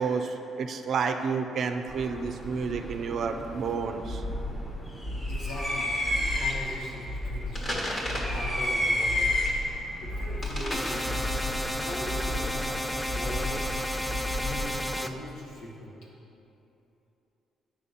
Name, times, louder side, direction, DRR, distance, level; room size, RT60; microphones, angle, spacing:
voice 1, 0.0-4.2, right 5 dB, 60° right, 6 dB, 0.4 m, -30 dB
sound 1, 1.9-14.9, left 1 dB, 30° left, 1.4 m, -33 dB
sound 2, 4.1-4.7 5.0-5.7 6.0-6.7 7.1-7.7 8.0-8.7 9.0-9.7 10.0-10.7 11.1-11.7 12.1-12.7 13.1-13.7 14.1-14.7, left 1 dB, 50° left, 1.4 m, -34 dB
voice 2, 5.3-9.4 10.0-13.6 14.4-15.9, equal, 85° left, -6 dB, 1.6 m, -40 dB
sound 3, 10.7-15.1, equal, 5° left, 0.4 m, -32 dB
8.0 x 5.8 x 4.2 m, 2.9 s
cardioid pair, 90°, 0 cm